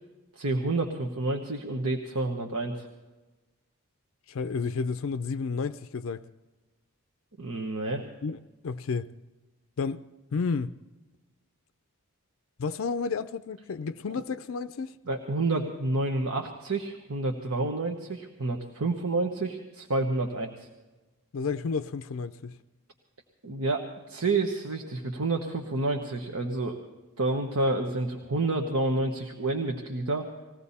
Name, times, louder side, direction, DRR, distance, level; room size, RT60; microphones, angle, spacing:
voice 1, 0.3-2.9 7.4-8.1 15.1-20.7 23.4-26.8 27.2-30.3, right 2 dB, 75° right, 1.2 m, -29 dB
voice 2, 4.3-6.2 8.2-9.1 9.8-10.0 10.3-10.8 12.6-15.0 21.3-22.6, left 5 dB, 60° left, 0.4 m, -31 dB
20.5 x 16.5 x 4.2 m
head